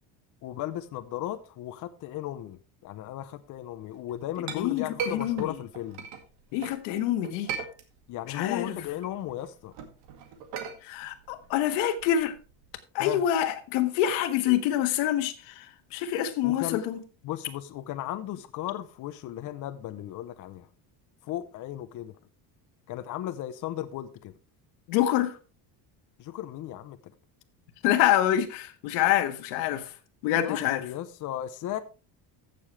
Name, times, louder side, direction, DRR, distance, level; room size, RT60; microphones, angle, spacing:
voice 1, 0.4-6.0 8.1-9.7 13.0-13.2 16.4-16.8 17.2-20.7 21.2-22.2 22.9-24.4 26.2-27.0 30.4-31.8, left 13 dB, 45° left, 0.7 m, -36 dB
Chink clink, 3.9-6.8 7.2-8.3 8.6-12.7, right 6 dB, 85° right, 2.1 m, -38 dB
voice 2, 4.5-5.5 6.5-7.5 8.3-8.8 10.8-12.3 12.9-15.7 15.9-17.0 24.9-25.3 27.8-29.8 30.2-30.8, left 11 dB, 85° left, 1.5 m, -26 dB
15.0 x 6.9 x 3.3 m
cardioid pair, 150°, 43 cm